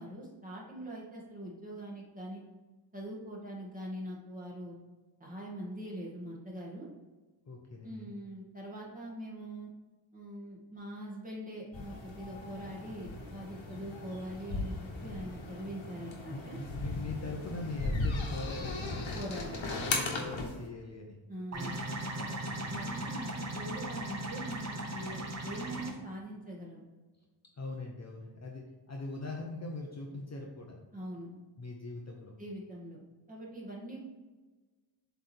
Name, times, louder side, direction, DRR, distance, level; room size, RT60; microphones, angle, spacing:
voice 1, 0.0-2.4 2.9-4.7 5.2-6.9 7.8-9.7 10.1-16.6 19.1-19.9 21.3-21.7 22.7-23.3 23.6-26.8 30.9-31.3 32.4-33.0 33.3-34.0, right 1 dB, 15° right, -4 dB, 1.9 m, -43 dB
voice 2, 7.5-8.1 16.3-19.1 19.8-21.2 22.1-22.6 27.6-30.8 31.6-32.3, left 2 dB, 35° left, 0 dB, 0.9 m, -41 dB
sound 1, 11.7-20.6, left 2 dB, 70° left, 1.4 m, -37 dB
sound 2, 21.5-25.9, right 1 dB, 35° right, 1.1 m, -38 dB
7.5 x 3.5 x 4.4 m, 1.2 s
wide cardioid pair, 125°, 48 cm